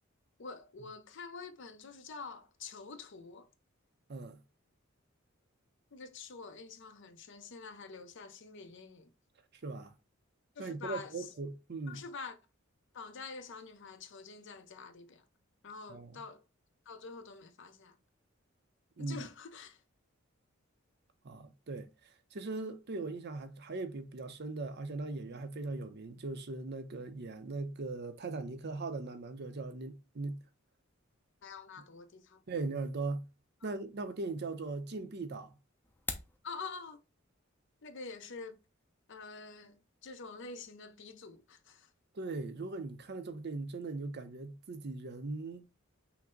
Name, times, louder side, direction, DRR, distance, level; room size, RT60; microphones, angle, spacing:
voice 1, 0.4-3.5 5.9-9.1 10.6-11.3 11.9-12.4 12.9-15.2 15.6-16.4 16.9-18.0 19.0-19.8 31.4-32.4 33.6-33.7 36.4-37.0 37.8-38.6 39.1-41.9, left 4 dB, 60° left, 0.6 m, -47 dB
voice 2, 9.6-9.9 10.6-12.0 15.9-16.1 19.0-19.2 21.2-21.9 22.3-30.4 32.5-33.3 33.6-35.5 42.1-45.6, right 3 dB, 55° right, 0.6 m, -39 dB
sound 1, 35.8-36.4, left 3 dB, 10° left, 0.5 m, -40 dB
5.8 x 2.1 x 3.7 m
head